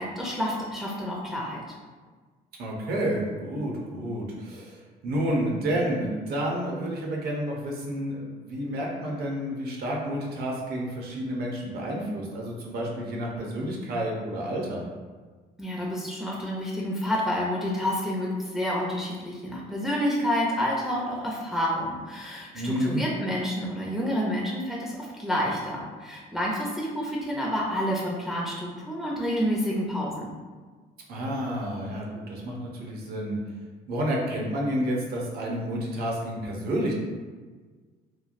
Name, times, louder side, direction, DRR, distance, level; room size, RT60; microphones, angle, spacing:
voice 1, 0.0-1.6 15.6-30.3, equal, ahead, -5 dB, 0.4 m, -29 dB
voice 2, 2.6-14.8 22.5-23.0 31.1-33.4 33.9-36.9, equal, 70° right, -2 dB, 0.7 m, -30 dB
3.1 x 2.1 x 2.5 m, 1.4 s
cardioid pair, 110°, 17 cm